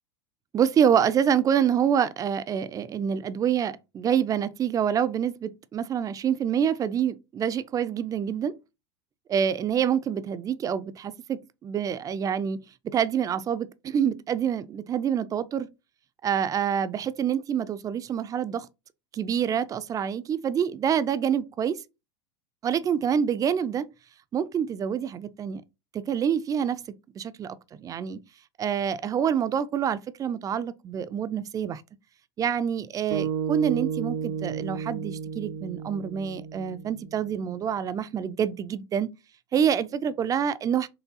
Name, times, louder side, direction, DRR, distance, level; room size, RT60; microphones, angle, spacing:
voice 1, 0.5-8.5 9.3-15.7 16.2-18.7 19.1-21.8 22.6-23.9 24.3-25.6 25.9-26.8 27.2-28.2 28.6-31.8 32.4-39.1 39.5-40.9, right 8 dB, 25° right, 0.4 m, -26 dB
sound 1, 33.1-37.5, right 7 dB, 75° right, 0.6 m, -32 dB
4.7 x 3.0 x 2.7 m
hypercardioid pair, 95°, 14 cm